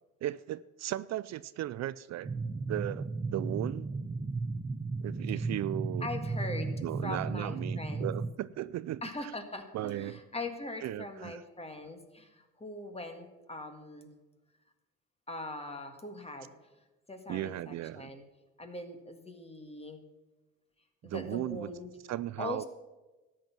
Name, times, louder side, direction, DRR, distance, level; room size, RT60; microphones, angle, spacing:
voice 1, 0.2-2.3 2.7-3.9 5.0-6.1 6.8-9.0 9.7-10.2 10.8-11.4 17.3-18.1 21.0-21.7 22.1-22.6, right 14 dB, 60° right, 17 dB, 0.4 m, -36 dB
sound 1, 2.2-8.3, right 3 dB, 15° right, 0.6 m, -35 dB
voice 2, 6.0-8.1 9.0-14.1 15.3-16.5 17.1-18.2 18.6-20.0 21.0-21.9 22.4-22.6, left 2 dB, 20° left, 6 dB, 1.8 m, -41 dB
13.0 x 9.3 x 6.0 m, 1.1 s
cardioid pair, 90°, 30 cm